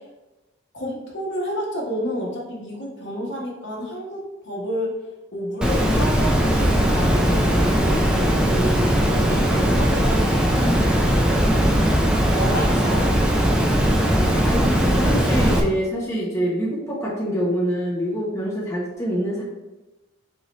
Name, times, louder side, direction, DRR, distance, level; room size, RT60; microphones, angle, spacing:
voice 1, 0.7-4.9 5.3-7.9 8.5-11.5 12.3-13.1, equal, 55° left, -2 dB, 1.1 m, -30 dB
Water, 5.6-15.6, equal, 5° right, 0.4 m, -19 dB
voice 2, 14.4-19.4, equal, 15° left, -5 dB, 0.9 m, -25 dB
4.1 x 3.7 x 3.1 m, 1.1 s
head